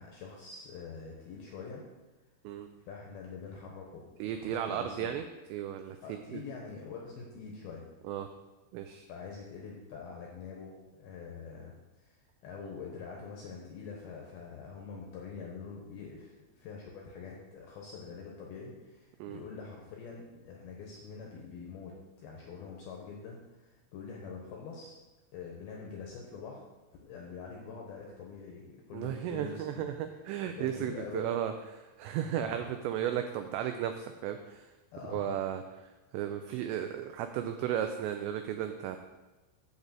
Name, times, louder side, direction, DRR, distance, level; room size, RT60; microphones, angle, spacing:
voice 1, 0.0-1.8 2.9-5.2 6.0-7.8 9.1-11.7 12.0-25.0 25.3-26.6 27.0-29.9 30.4-31.2 32.4-32.7 34.9-35.4, left 5 dB, 75° left, -1 dB, 2.3 m, -45 dB
voice 2, 4.2-5.2 5.5-6.4 8.0-8.3 8.7-9.1 19.2-19.4 28.9-34.7 35.1-39.0, right 10 dB, 90° right, 7 dB, 2.5 m, -35 dB
10.5 x 4.1 x 7.5 m, 1.1 s
omnidirectional pair, 5.6 m